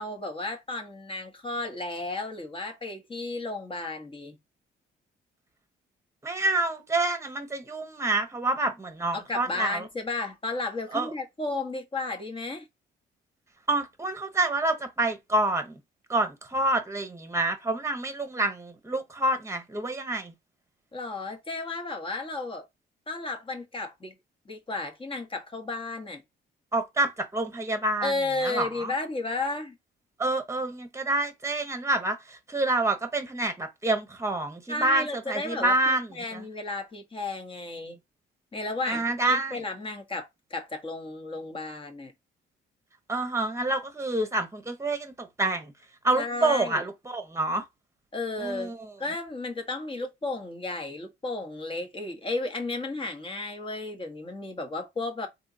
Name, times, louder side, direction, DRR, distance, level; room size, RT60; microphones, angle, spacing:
voice 1, 0.0-4.4 9.1-12.7 20.9-22.6 23.1-24.1 24.5-26.2 28.0-29.8 34.7-38.0 38.5-42.1 46.2-46.9 48.1-48.7 49.0-55.3, left 2 dB, 25° left, 1.1 m, -33 dB
voice 2, 6.2-9.9 10.9-11.1 13.7-15.8 16.1-20.3 26.7-28.1 28.4-28.9 30.2-36.4 38.9-39.6 43.1-45.7 46.0-47.6 48.4-48.9, right 2 dB, 15° right, 1.1 m, -28 dB
3.6 x 2.9 x 2.7 m
cardioid pair, 90°, 20 cm